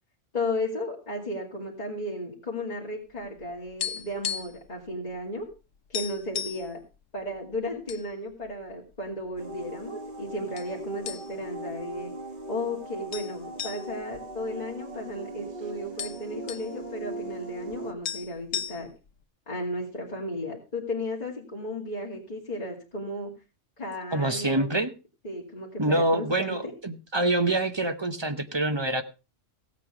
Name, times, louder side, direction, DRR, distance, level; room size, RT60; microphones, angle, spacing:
voice 1, 0.3-5.5 5.9-6.8 7.1-12.1 12.5-18.9 19.5-23.3 23.8-24.7 25.2-26.7, left 1 dB, 35° left, -3 dB, 2.5 m, -34 dB
sound 1, 3.2-4.7 4.9-5.1 5.5-5.6 5.9-6.7 7.4-8.0 8.4-8.5 9.2-9.9 10.6-10.7 11.1-11.6 11.9-12.0 13.1-15.2 15.5-15.6 15.8-16.7 17.7-17.8 18.0-19.1, left 9 dB, 90° left, 1.2 m, -35 dB
sound 2, 9.4-17.9, right 2 dB, 40° right, 1.6 m, -40 dB
voice 2, 24.1-24.9 25.8-29.0, right 2 dB, 25° right, 9 dB, 0.9 m, -26 dB
16.0 x 8.5 x 4.9 m, 0.32 s
omnidirectional pair, 1.3 m